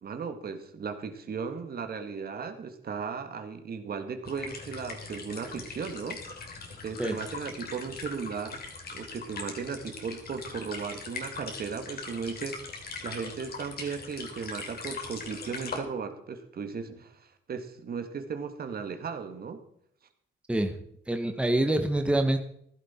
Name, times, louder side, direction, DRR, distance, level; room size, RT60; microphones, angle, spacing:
voice 1, 0.0-6.4 6.8-8.6 8.9-19.6, right 5 dB, 50° right, 8 dB, 1.8 m, -36 dB
sound 1, 4.2-15.8, left 4 dB, 50° left, 3.2 m, -41 dB
voice 2, 21.1-22.4, right 1 dB, 5° right, 6 dB, 1.2 m, -25 dB
15.0 x 11.5 x 4.4 m, 0.68 s
cardioid pair, 90°, 20 cm